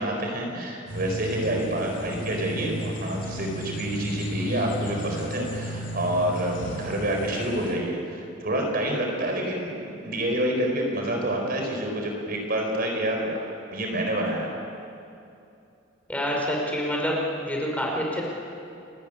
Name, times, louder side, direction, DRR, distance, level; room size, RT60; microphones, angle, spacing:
voice 1, 0.0-13.4 13.7-14.5, right 1 dB, 50° right, 1 dB, 4.6 m, -28 dB
sound 1, 0.9-7.7, equal, 75° left, 4.2 m, -34 dB
voice 2, 16.1-18.2, equal, 10° left, -2 dB, 4.6 m, -27 dB
30.0 x 14.0 x 9.0 m, 2.7 s
head